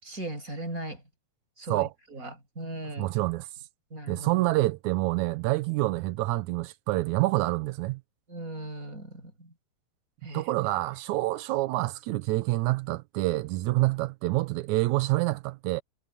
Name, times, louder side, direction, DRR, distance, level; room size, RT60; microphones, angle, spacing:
voice 1, 0.0-1.0 1.6-3.1 3.9-4.4 8.3-9.5 10.2-10.4, right 2 dB, 20° right, 6.8 m, -38 dB
voice 2, 3.0-3.5 4.1-8.0 10.3-15.8, right 19 dB, 80° right, 1.7 m, -27 dB
omnidirectional pair, 4.2 m